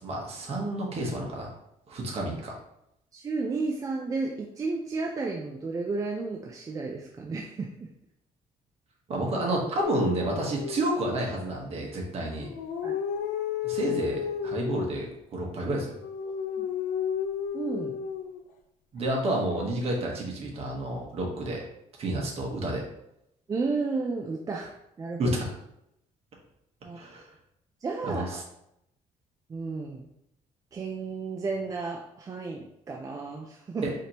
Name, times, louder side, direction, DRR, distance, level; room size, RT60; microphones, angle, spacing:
voice 1, 0.0-1.5 1.9-2.5 9.1-12.5 13.6-15.9 18.9-21.6 22.0-22.9 24.5-24.6 25.2-25.5 26.9-27.2 28.0-28.4 33.8-33.9, right 1 dB, 45° right, -1 dB, 1.2 m, -30 dB
voice 2, 3.1-7.9 12.8-12.9 17.5-18.0 23.5-24.7 25.0-25.4 26.8-27.0 27.8-28.4 29.5-30.1 30.7-33.8, right 3 dB, 25° right, 0 dB, 0.4 m, -32 dB
sound 1, 9.8-11.5 12.3-15.0 15.8-18.4 19.5-20.1, left 8 dB, 85° left, 0.5 m, -33 dB
4.9 x 2.9 x 2.9 m, 0.79 s
cardioid pair, 130°, 14 cm